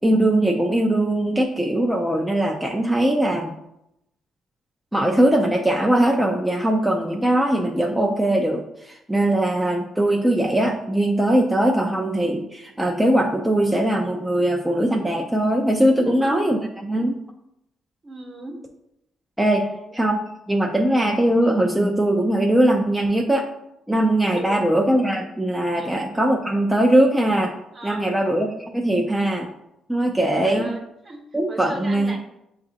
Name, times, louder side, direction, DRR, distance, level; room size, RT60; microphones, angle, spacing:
voice 1, 0.0-3.5 4.9-17.2 19.4-23.5 23.9-27.5 27.8-28.5 28.7-29.5 29.9-30.7 31.3-32.2, right 1 dB, 5° right, 0 dB, 0.5 m, -20 dB
voice 2, 15.9-16.5 18.0-18.6 19.5-20.0 24.3-24.6 25.8-25.9 27.7-28.1 30.3-31.2 31.5-32.2, right 2 dB, 40° right, 2 dB, 1.0 m, -38 dB
7.0 x 2.4 x 2.8 m, 0.84 s
cardioid pair, 75°, 0 cm